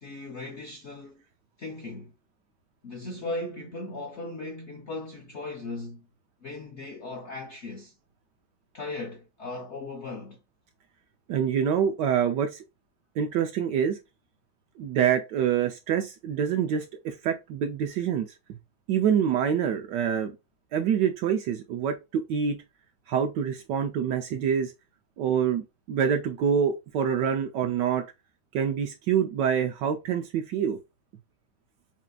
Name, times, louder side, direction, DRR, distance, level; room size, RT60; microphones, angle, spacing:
voice 1, 0.0-1.2 1.6-2.1 2.8-6.1 6.4-7.9 8.7-10.4, left 2 dB, 80° left, 0.6 m, -37 dB
voice 2, 11.3-12.6 13.2-14.0 14.8-18.3 18.9-20.3 20.7-22.6 23.1-24.7 25.2-28.1 28.5-30.8, right 8 dB, 75° right, 1.1 m, -26 dB
5.8 x 2.7 x 2.2 m
omnidirectional pair, 2.1 m